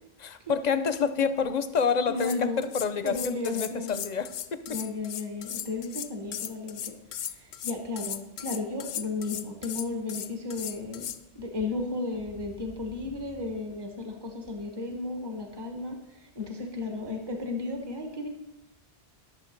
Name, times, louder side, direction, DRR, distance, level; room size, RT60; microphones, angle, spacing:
voice 1, 0.2-4.8 16.4-16.6, left 6 dB, 50° left, 11 dB, 0.7 m, -28 dB
sound 1, 1.9-11.2, left 10 dB, 85° left, 0.9 m, -37 dB
voice 2, 2.1-2.7 3.0-4.0 4.7-6.9 7.6-11.1 11.3-16.0 16.3-18.3, left 3 dB, 25° right, 3 dB, 1.2 m, -34 dB
12.0 x 6.9 x 5.2 m, 0.97 s
omnidirectional pair, 1.1 m